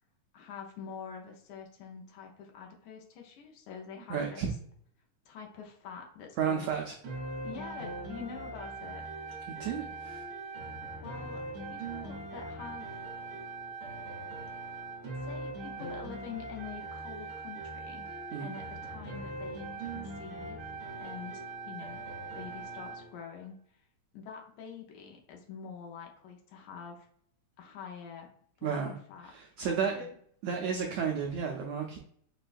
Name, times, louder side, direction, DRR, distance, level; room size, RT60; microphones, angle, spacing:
voice 1, 0.3-4.5 5.3-6.7 7.4-9.1 11.0-13.0 15.2-18.1 18.4-20.7 21.0-23.6 24.1-27.1 27.6-28.3 28.6-30.1, left 7 dB, 75° left, 1 dB, 2.0 m, -46 dB
voice 2, 4.1-4.5 6.4-6.9 9.5-10.2 18.3-18.5 28.6-28.9 29.3-30.1 30.4-32.0, right 7 dB, 85° right, 2 dB, 1.5 m, -32 dB
sound 1, 7.0-23.1, right 3 dB, 60° right, 1.6 m, -41 dB
6.2 x 2.3 x 2.4 m, 0.64 s
omnidirectional pair, 3.6 m